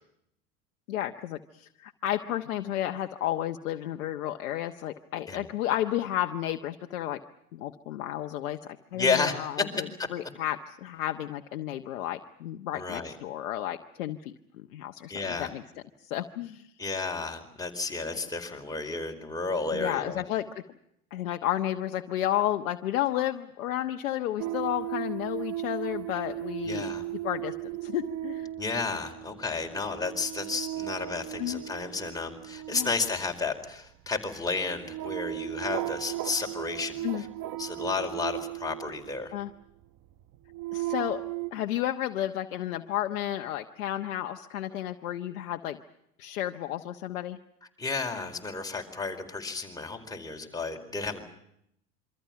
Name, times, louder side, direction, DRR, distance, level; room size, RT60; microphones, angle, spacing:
voice 1, 0.9-7.2 7.5-15.6 16.0-16.7 19.7-20.5 21.1-27.0 27.2-27.5 27.8-28.5 31.4-31.6 32.7-32.9 37.0-37.2 39.3-39.5 40.7-41.2 41.5-45.8 46.2-47.4, left 12 dB, 60° left, 5 dB, 1.3 m, -32 dB
voice 2, 8.9-9.3 10.0-10.1 12.7-13.1 15.1-15.5 16.8-20.2 26.6-27.0 28.6-37.3 37.6-39.3 47.8-51.2, left 4 dB, 10° left, 2 dB, 4.5 m, -32 dB
sound 1, 24.4-39.5 40.2-41.5, right 15 dB, 35° right, 1.1 m, -36 dB
27.5 x 25.0 x 5.9 m, 0.76 s
figure-of-eight pair, 80°, 45 cm